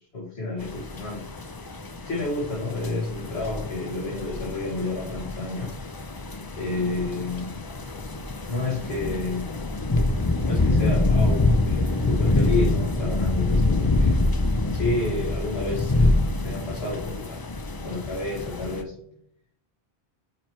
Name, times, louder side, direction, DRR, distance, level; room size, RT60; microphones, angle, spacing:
voice 1, 0.1-1.2 2.0-5.8 6.6-7.6 8.5-9.5 10.4-14.2 14.7-16.2 16.4-17.5 17.8-18.9, left 2 dB, 90° left, -5 dB, 2.0 m, -30 dB
sound 1, 0.6-18.8, left 2 dB, 30° left, 0.4 m, -25 dB
9.1 x 3.1 x 4.5 m, 0.68 s
omnidirectional pair, 1.0 m